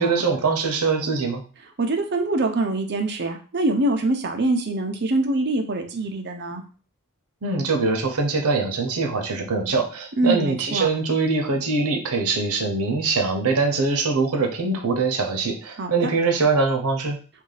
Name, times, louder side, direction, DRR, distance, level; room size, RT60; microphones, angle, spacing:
voice 1, 0.0-1.4 7.4-17.2, right 4 dB, 85° right, 4 dB, 0.8 m, -23 dB
voice 2, 1.8-6.6 10.2-10.9 15.8-16.1, right 2 dB, 50° right, 4 dB, 0.6 m, -24 dB
3.0 x 2.7 x 4.0 m, 0.38 s
head